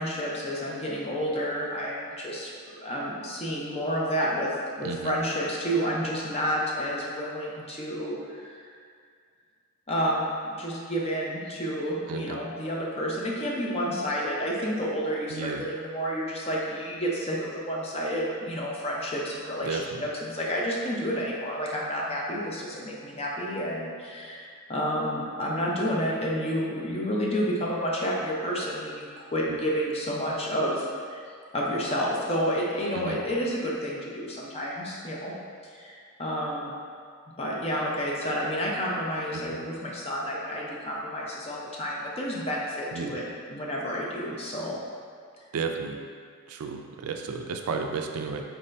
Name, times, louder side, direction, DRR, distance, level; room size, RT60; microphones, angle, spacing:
voice 1, 0.0-2.5 2.8-8.5 9.9-31.2 31.5-35.3 35.7-36.7 37.4-43.2 43.5-44.8, equal, 25° left, -4 dB, 0.5 m, -30 dB
voice 2, 4.8-5.1 12.1-12.4 15.3-15.7 19.6-20.1 32.9-33.2 39.3-39.6 42.9-43.2 45.5-46.0 46.5-48.5, right 5 dB, 80° right, 4 dB, 0.4 m, -33 dB
4.6 x 2.6 x 3.2 m, 2.1 s
head